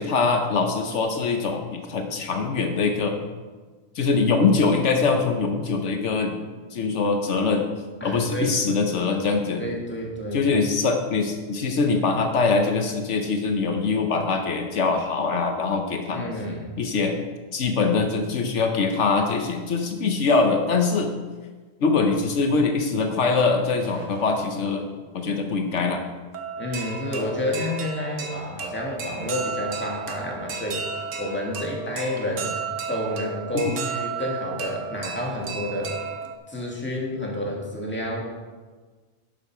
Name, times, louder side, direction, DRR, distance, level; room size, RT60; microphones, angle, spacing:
voice 1, 0.0-3.1 3.9-6.4 6.7-7.7 8.0-9.6 10.3-16.3 16.8-17.2 17.5-21.1 21.8-24.9 25.1-26.0 33.6-33.8, left 4 dB, 75° left, 5 dB, 1.2 m, -23 dB
voice 2, 8.0-8.6 9.6-10.5 16.1-16.8 26.6-30.8 31.2-32.5 32.9-35.9 36.5-38.2, left 1 dB, 10° left, -2 dB, 2.0 m, -29 dB
sound 1, 23.3-23.4 23.7-24.5 25.8-25.9 26.3-36.4, right 5 dB, 85° right, 1.3 m, -34 dB
11.5 x 7.4 x 4.7 m, 1.4 s
omnidirectional pair, 1.2 m